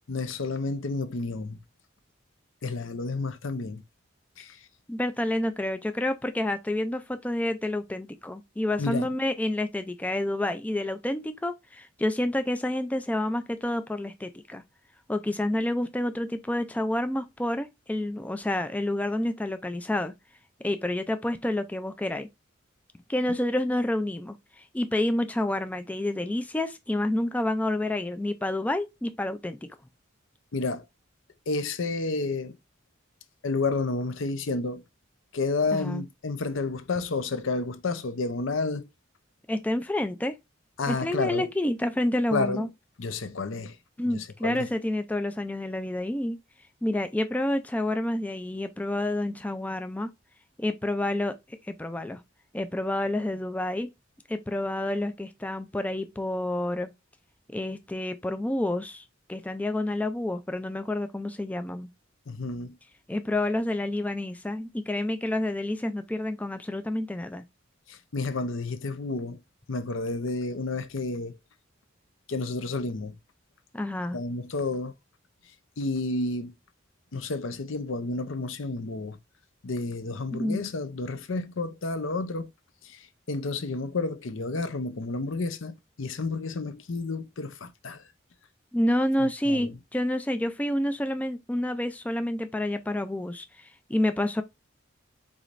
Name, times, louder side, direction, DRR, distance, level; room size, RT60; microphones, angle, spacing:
voice 1, 0.1-1.6 2.6-3.8 4.4-4.6 8.8-9.1 30.5-30.8 31.5-32.6 33.4-34.8 35.3-38.8 40.8-41.5 42.3-42.7 43.0-43.8 44.0-44.7 62.3-62.8 67.9-69.4 69.7-71.3 72.3-73.2 74.1-74.9 75.8-76.5 77.1-79.2 79.6-82.5 82.8-88.0 89.5-89.7, left 3 dB, 75° left, 0.7 m, -30 dB
voice 2, 4.9-14.6 15.1-20.1 20.6-22.3 23.1-29.7 35.7-36.0 39.5-40.4 40.9-42.7 44.0-46.4 46.8-50.1 50.6-52.2 52.5-53.9 54.3-56.9 57.5-61.9 63.1-67.4 73.7-74.2 80.3-80.6 88.7-94.4, left 1 dB, 5° left, 0.3 m, -29 dB
4.9 x 4.1 x 2.5 m
head